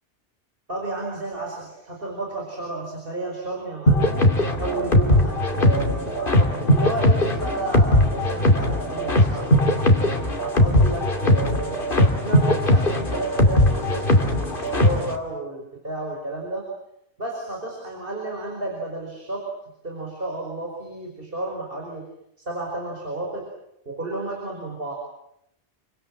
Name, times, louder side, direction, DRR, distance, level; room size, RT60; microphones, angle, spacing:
voice 1, 0.7-4.2 4.6-10.0 10.4-16.6 17.2-19.4 19.8-22.0 22.4-23.5 23.8-24.9, right 2 dB, 50° right, -1 dB, 5.1 m, -32 dB
sound 1, 3.9-15.1, left 1 dB, 50° left, 2.7 m, -19 dB
28.5 x 24.0 x 7.5 m, 0.79 s
omnidirectional pair, 1.2 m